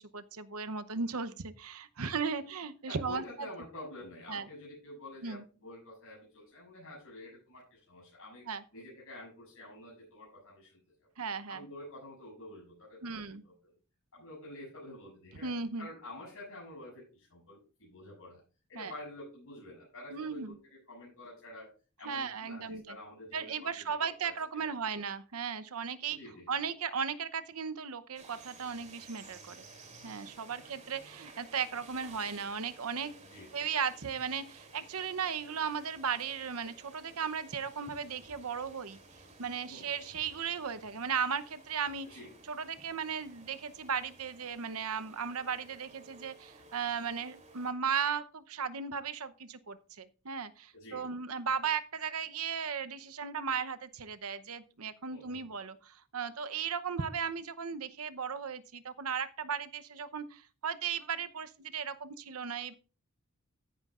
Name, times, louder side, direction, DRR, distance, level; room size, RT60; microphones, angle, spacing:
voice 1, 0.1-3.5 4.3-4.5 5.2-5.4 8.5-8.6 11.2-11.6 13.0-13.4 15.4-15.9 18.7-18.9 20.1-20.6 22.0-23.0 23.3-26.2 26.5-29.6 30.0-33.1 33.5-39.0 39.4-42.2 42.5-62.7, right 6 dB, 70° right, 11 dB, 0.8 m, -36 dB
voice 2, 2.9-8.5 8.7-11.1 11.5-13.7 14.1-15.5 15.8-18.4 18.7-21.7 22.0-23.9 24.2-24.7 26.1-26.5 30.5-30.7 33.3-33.6 39.7-39.9 42.0-42.3 50.7-51.1 55.1-55.4, left 1 dB, 65° left, -5 dB, 6.8 m, -49 dB
sound 1, 28.2-47.7, right 3 dB, 30° right, 3.2 m, -55 dB
14.5 x 9.7 x 2.5 m, 0.35 s
head